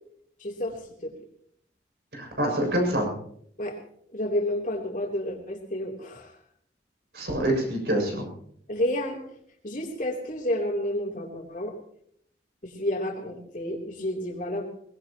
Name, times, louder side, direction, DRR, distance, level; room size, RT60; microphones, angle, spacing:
voice 1, 0.4-1.1 3.6-3.8 4.1-6.3 8.7-9.2 9.6-11.7 12.6-14.7, left 1 dB, 45° left, 0 dB, 3.4 m, -30 dB
voice 2, 2.1-3.2 7.1-8.3, right 1 dB, 60° right, 1 dB, 7.0 m, -26 dB
22.5 x 19.5 x 3.0 m, 0.65 s
head